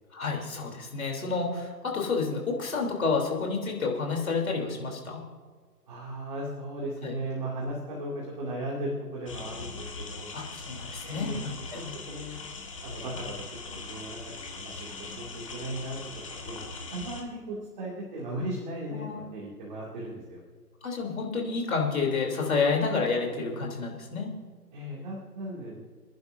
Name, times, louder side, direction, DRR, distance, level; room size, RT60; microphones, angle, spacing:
voice 1, 0.1-5.2 7.0-7.1 10.3-11.3 11.7-11.8 19.0-19.2 20.8-24.3, left 4 dB, 60° left, 0 dB, 3.5 m, -29 dB
voice 2, 5.9-10.3 11.0-11.4 11.7-12.3 12.8-16.0 16.3-16.6 16.9-20.4 24.7-25.8, right 1 dB, 30° right, -4 dB, 2.6 m, -37 dB
sound 1, 9.3-17.2, left 4 dB, 20° left, 1.1 m, -41 dB
28.5 x 10.5 x 2.7 m, 1.5 s
hypercardioid pair, 160°, 48 cm